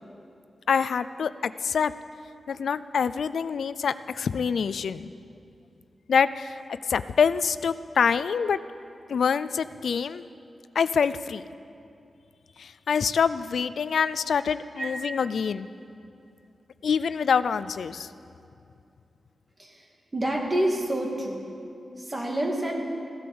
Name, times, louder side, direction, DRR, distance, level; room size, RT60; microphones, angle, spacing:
voice 1, 0.7-1.9 2.5-5.1 6.1-6.5 6.9-8.6 9.1-10.2 10.8-11.4 12.6-15.7 16.8-18.1, left 6 dB, 75° left, 15 dB, 0.4 m, -25 dB
voice 2, 20.1-21.4 22.0-22.8, right 1 dB, 20° right, 0 dB, 1.8 m, -28 dB
15.5 x 12.0 x 7.0 m, 2.6 s
wide cardioid pair, 180°, 0 cm